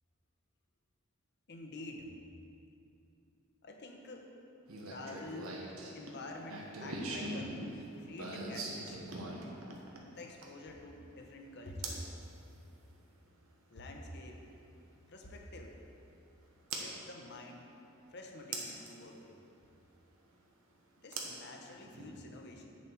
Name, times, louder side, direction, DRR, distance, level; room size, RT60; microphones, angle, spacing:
voice 1, 1.5-2.1 3.6-4.3 4.9-5.6 5.9-7.6 8.0-9.0 10.2-12.1 13.7-14.5 15.1-15.8 16.7-17.7 18.1-19.4 21.0-22.7, left 2 dB, 55° left, 2 dB, 0.9 m, -48 dB
sound 1, 4.7-10.7 11.8-12.1 14.0-14.1 16.7-16.9 18.5-18.9 21.1-22.1, right 2 dB, 90° right, 1.2 m, -41 dB
8.5 x 7.1 x 4.6 m, 2.7 s
head